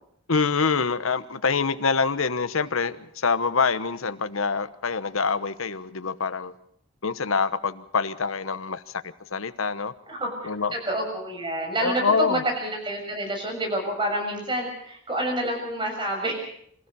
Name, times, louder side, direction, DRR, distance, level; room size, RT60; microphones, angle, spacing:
voice 1, 0.3-6.5 7.0-8.8 9.3-9.9 10.4-10.7 11.8-12.4, left 5 dB, 75° left, 1.1 m, -25 dB
voice 2, 10.1-16.5, right 1 dB, 25° right, 6.7 m, -28 dB
26.5 x 15.0 x 6.9 m
head